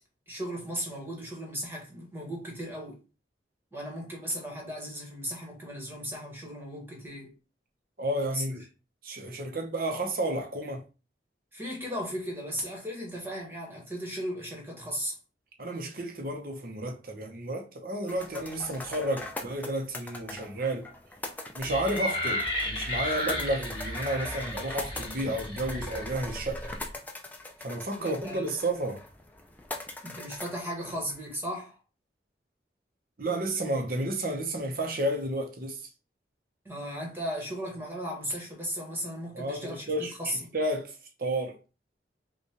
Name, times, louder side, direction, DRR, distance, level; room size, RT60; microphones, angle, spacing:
voice 1, 0.3-3.0 3.7-7.3 8.3-8.4 11.5-15.1 28.0-28.5 30.0-31.8 36.6-40.4, equal, 15° right, 1.5 m, -36 dB
voice 2, 8.0-8.6 9.0-10.8 15.6-20.9 21.5-26.6 27.6-29.0 33.2-35.8 39.3-40.1 40.5-40.9 41.2-41.6, right 1 dB, 55° right, 0.8 m, -31 dB
sound 1, 18.1-31.3, left 2 dB, 10° left, 0.5 m, -42 dB
sound 2, 21.6-26.9, left 1 dB, 30° left, 1.7 m, -33 dB
5.5 x 2.5 x 3.0 m
head